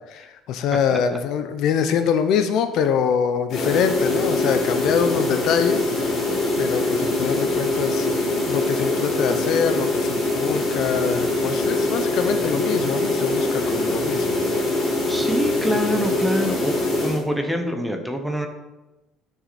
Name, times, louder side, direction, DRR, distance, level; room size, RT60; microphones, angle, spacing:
voice 1, 0.1-5.9 6.6-8.1 8.5-14.4, left 7 dB, 55° left, 9 dB, 0.7 m, -24 dB
sound 1, 3.5-17.2, left 2 dB, 40° left, 3.2 m, -23 dB
voice 2, 15.1-16.7 17.0-18.5, equal, 5° right, 4 dB, 1.1 m, -25 dB
13.0 x 6.2 x 4.2 m, 1.0 s
cardioid pair, 160°, 0 cm